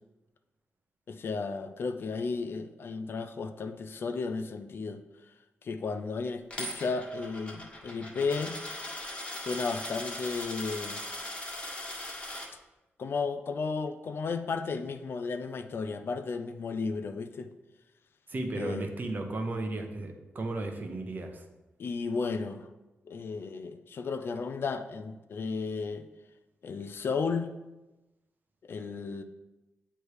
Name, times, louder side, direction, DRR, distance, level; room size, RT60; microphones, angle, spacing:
voice 1, 1.1-5.0 5.6-8.5 9.4-11.0 13.0-17.5 18.5-18.9 21.8-22.7 23.1-26.1 26.6-27.5 28.6-29.2, left 4 dB, 60° left, 8 dB, 0.5 m, -34 dB
Coin (dropping), 6.5-12.5, left 1 dB, 25° left, 1.5 m, -39 dB
voice 2, 18.3-21.4, right 2 dB, 45° right, 4 dB, 0.9 m, -34 dB
8.0 x 3.3 x 4.8 m, 1.1 s
cardioid pair, 95°, 4 cm